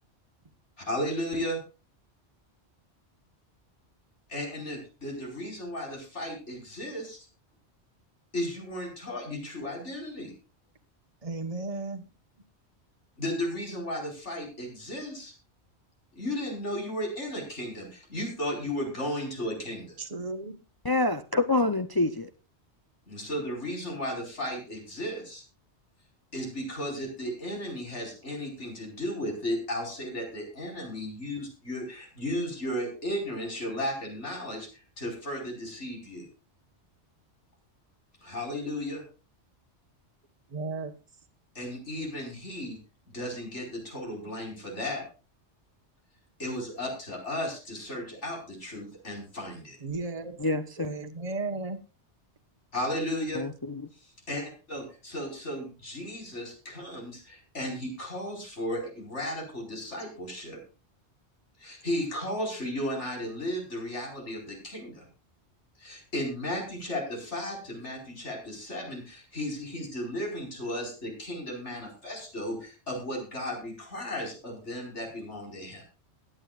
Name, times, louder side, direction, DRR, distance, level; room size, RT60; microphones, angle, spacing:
voice 1, 0.8-1.6 4.3-7.2 8.3-10.3 13.2-15.3 16.1-20.0 23.1-25.4 26.3-36.3 38.2-39.0 41.6-42.8 43.1-45.0 46.4-49.8 52.7-53.4 54.0-60.6 61.6-65.1 65.8-75.8, left 1 dB, 80° left, 5.1 m, -35 dB
voice 2, 11.2-12.1 20.0-20.6 40.5-40.9 49.8-50.4 50.8-51.8, right 3 dB, 30° right, 1.3 m, -34 dB
voice 3, 20.8-22.3 50.4-51.0 53.3-53.8, left 2 dB, 25° left, 0.5 m, -27 dB
21.5 x 8.9 x 2.4 m
omnidirectional pair, 1.2 m